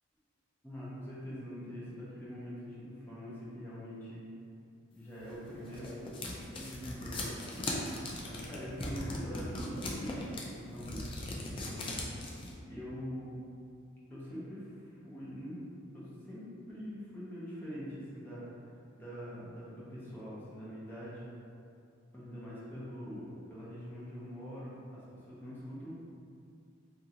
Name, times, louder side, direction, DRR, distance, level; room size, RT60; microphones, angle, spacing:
voice 1, 0.6-4.3 5.0-5.9 6.5-7.7 8.2-11.9 12.7-13.4 14.1-15.6 15.9-18.7 18.9-21.3 22.1-25.9, equal, 10° left, -9 dB, 0.7 m, -44 dB
sound 1, 5.3-12.5, left 2 dB, 25° left, 0.3 m, -39 dB
2.7 x 2.4 x 2.8 m, 2.4 s
head